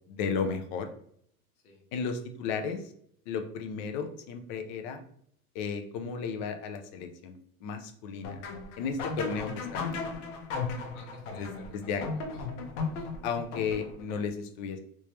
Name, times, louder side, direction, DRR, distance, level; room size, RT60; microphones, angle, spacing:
voice 1, 0.1-0.9 1.9-2.8 3.3-5.0 5.5-7.3 7.6-8.4 8.8-10.2 11.4-11.5 11.7-12.0 13.2-14.8, left 5 dB, 35° left, 7 dB, 0.4 m, -34 dB
sound 1, 8.2-14.1, left 4 dB, 55° left, 0.8 m, -36 dB
voice 2, 10.9-12.6 12.9-13.1, left 2 dB, 85° left, -1 dB, 1.3 m, -53 dB
3.2 x 2.9 x 3.1 m, 0.65 s
supercardioid pair, 150°, 44 cm